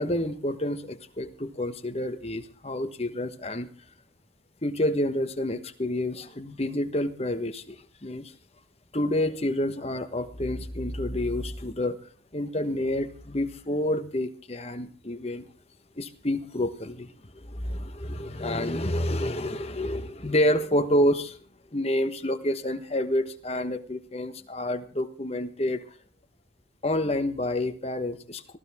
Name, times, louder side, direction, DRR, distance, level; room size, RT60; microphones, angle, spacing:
voice 1, 0.0-3.7 4.6-8.3 8.9-12.0 12.3-15.4 16.0-21.4 21.7-25.8 26.8-28.6, left 1 dB, 35° left, 8 dB, 1.3 m, -28 dB
18.5 x 15.5 x 3.6 m, 0.43 s
head